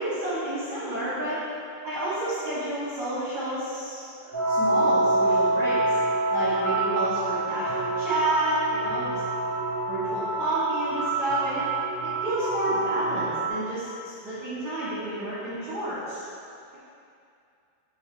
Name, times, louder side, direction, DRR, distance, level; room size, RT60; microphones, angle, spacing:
voice 1, 0.0-1.4 1.8-6.0 6.3-9.2 9.9-11.6 12.2-13.9 14.2-16.2, right 1 dB, 60° right, -13 dB, 2.0 m, -30 dB
sound 1, 4.3-13.5, right 2 dB, 85° left, 1.2 m, -26 dB
7.7 x 4.8 x 3.3 m, 2.5 s
omnidirectional pair, 5.5 m